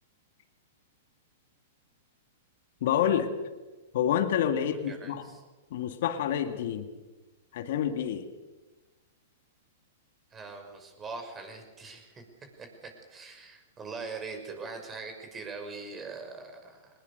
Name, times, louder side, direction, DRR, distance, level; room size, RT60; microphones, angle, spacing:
voice 1, 2.8-3.3 3.9-5.3 5.7-6.9 7.5-8.3, left 9 dB, 60° left, 7 dB, 2.0 m, -28 dB
voice 2, 4.6-5.4 10.3-12.2 12.6-16.9, right 4 dB, 20° right, 5 dB, 5.8 m, -42 dB
22.5 x 20.0 x 6.9 m, 1.2 s
hypercardioid pair, 115°, 0 cm